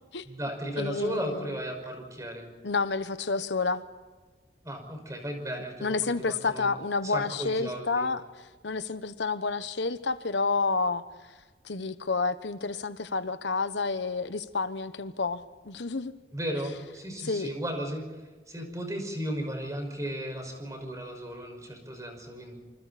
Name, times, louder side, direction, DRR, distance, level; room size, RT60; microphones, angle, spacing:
voice 1, 0.2-2.5 4.6-6.8 7.0-8.1 16.3-18.0 18.5-22.5, equal, 20° right, 4 dB, 5.5 m, -35 dB
voice 2, 0.8-1.5 2.6-3.8 5.8-8.2 8.6-11.0 11.6-16.1 17.2-17.5, left 4 dB, 85° left, 12 dB, 1.1 m, -29 dB
27.5 x 25.5 x 4.3 m, 1.3 s
head